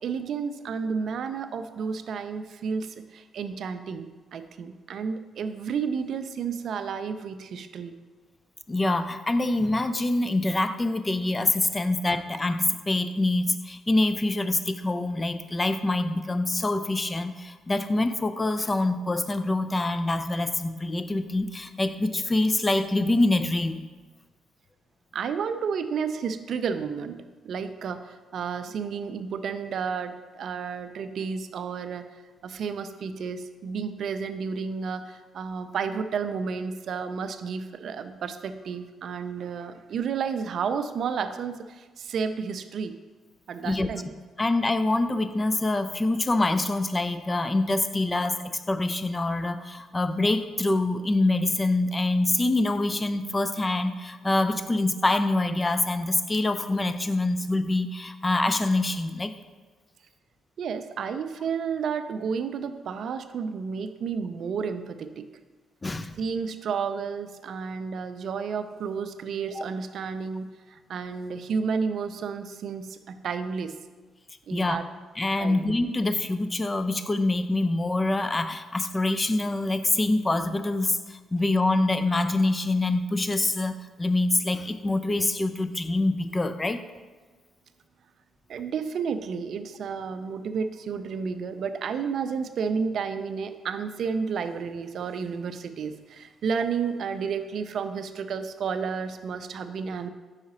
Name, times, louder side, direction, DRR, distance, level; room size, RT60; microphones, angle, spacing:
voice 1, 0.0-7.9 25.1-43.0 43.5-44.1 60.6-65.2 66.2-73.8 74.5-74.8 75.4-75.6 88.5-100.1, right 6 dB, 65° right, 10 dB, 0.4 m, -31 dB
voice 2, 8.7-23.8 43.6-43.9 44.4-59.3 65.8-66.1 69.5-69.6 74.5-74.8 75.2-86.8, left 2 dB, 20° left, 11 dB, 0.3 m, -25 dB
4.9 x 4.8 x 4.2 m, 1.3 s
cardioid pair, 90°, 0 cm